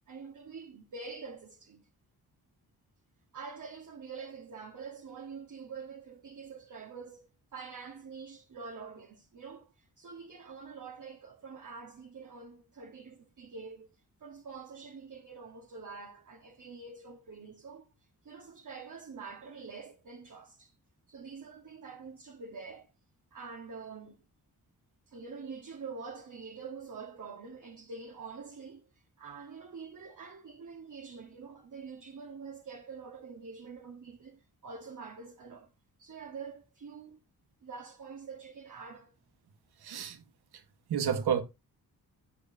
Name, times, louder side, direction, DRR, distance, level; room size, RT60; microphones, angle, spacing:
voice 1, 0.1-1.9 3.3-13.9 14.2-17.9 18.2-20.7 21.1-22.9 23.3-24.2 25.1-35.7 36.0-37.2 37.6-39.1, right 5 dB, 50° right, 1.4 m, -46 dB
voice 2, 39.8-40.2 40.5-40.6 40.9-41.4, right 8 dB, 85° right, 1.4 m, -30 dB
12.5 x 7.3 x 2.7 m
cardioid pair, 60°, 38 cm